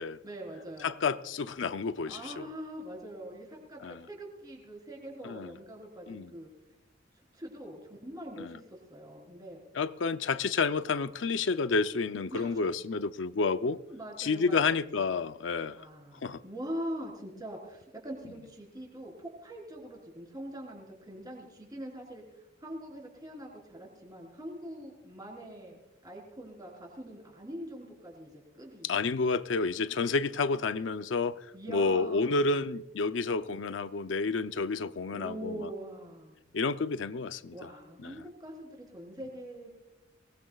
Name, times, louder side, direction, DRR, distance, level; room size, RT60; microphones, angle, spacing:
voice 1, 0.2-1.0 2.0-6.5 7.3-9.6 12.3-12.7 13.9-14.7 15.7-22.2 22.6-28.9 31.5-32.5 35.1-36.4 37.5-39.7, right 1 dB, 20° right, 4.1 m, -43 dB
voice 2, 0.8-2.5 3.8-4.0 5.2-5.5 6.1-6.3 8.4-8.6 9.7-13.8 14.2-15.9 16.2-16.4 28.8-35.7 36.5-37.7 38.0-38.2, left 4 dB, 80° left, 0.6 m, -30 dB
24.0 x 20.0 x 2.4 m
head